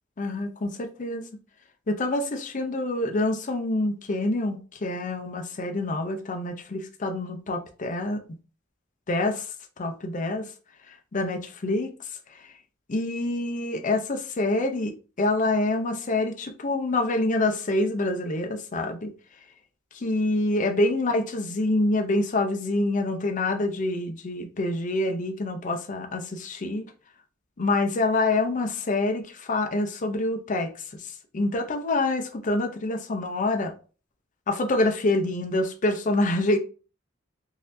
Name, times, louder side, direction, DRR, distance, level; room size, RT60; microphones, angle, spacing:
voice 1, 0.2-1.2 1.9-8.2 9.1-9.5 9.8-10.4 11.1-11.9 12.9-19.1 20.0-26.8 27.6-30.7 31.3-33.7 34.5-36.6, left 2 dB, 40° left, 0.5 m, -26 dB
3.9 x 2.6 x 2.6 m
head